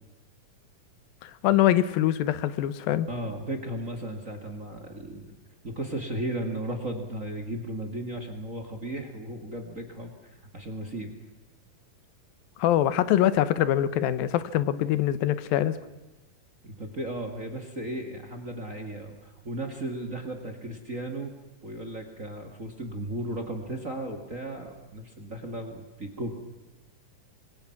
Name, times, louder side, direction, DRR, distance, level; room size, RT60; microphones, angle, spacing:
voice 1, 1.2-3.1 12.6-15.8, left 12 dB, 85° left, 15 dB, 2.7 m, -24 dB
voice 2, 3.1-5.3 5.6-10.1 10.5-11.1 16.6-21.3 21.6-26.3, right 1 dB, 30° right, 5 dB, 1.9 m, -35 dB
27.0 x 23.0 x 6.0 m, 1.1 s
omnidirectional pair, 4.1 m